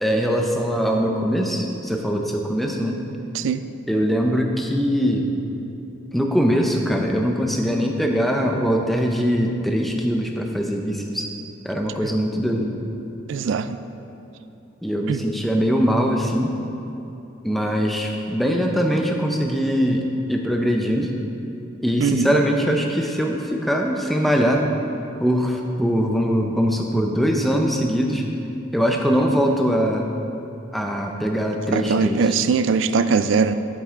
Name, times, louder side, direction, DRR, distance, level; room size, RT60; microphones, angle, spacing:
voice 1, 0.0-3.0 3.9-5.3 6.1-11.3 11.6-12.7 14.8-16.5 17.4-21.1 21.8-24.7 25.2-28.2 28.7-30.1 30.7-32.2, equal, ahead, 1 dB, 0.5 m, -22 dB
voice 2, 3.3-3.7 12.0-12.1 13.3-13.8 15.1-15.3 22.0-22.3 31.7-33.5, right 5 dB, 70° right, 12 dB, 0.3 m, -21 dB
8.2 x 7.7 x 3.6 m, 2.9 s
head